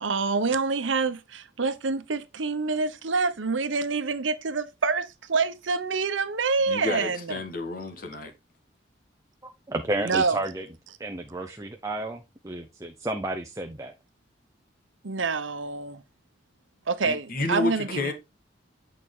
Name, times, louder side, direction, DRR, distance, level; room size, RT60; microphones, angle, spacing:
voice 1, 0.0-7.4 10.0-10.4 15.0-16.0 16.9-18.1, right 4 dB, 85° right, 0.9 m, -27 dB
voice 2, 6.7-8.3 17.0-18.1, left 2 dB, 50° left, 1.4 m, -30 dB
voice 3, 9.4-10.7 11.0-13.9, right 2 dB, 15° right, 0.6 m, -32 dB
8.7 x 4.5 x 3.7 m
head